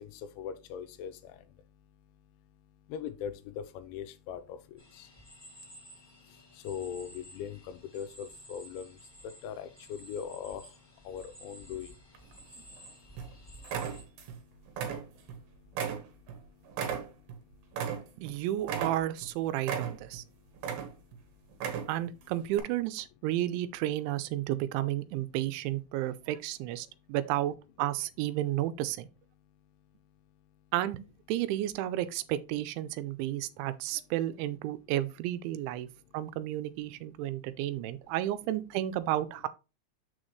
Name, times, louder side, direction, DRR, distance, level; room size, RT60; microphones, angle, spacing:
voice 1, 0.0-18.5 19.5-19.7 20.0-21.9 22.2-22.3 25.9-26.3 26.8-27.2 29.3-30.7 32.9-34.1 34.7-35.0 35.8-36.4 36.9-38.1 38.7-38.9, left 8 dB, 90° left, 3.1 m, -45 dB
sound 1, 4.8-14.0, right 1 dB, 10° left, 1.0 m, -53 dB
sound 2, 12.1-12.8 13.2-13.3 13.6-14.4 14.7-15.4 15.7-18.3 18.6-19.3 19.6-20.2 20.6-21.2 21.5-22.1 22.5-22.6, right 7 dB, 65° right, 2.9 m, -35 dB
voice 2, 18.2-20.2 21.9-29.1 30.7-31.0 31.3-35.9 36.1-39.5, right 13 dB, 85° right, 2.9 m, -32 dB
6.8 x 6.4 x 3.1 m
omnidirectional pair, 5.3 m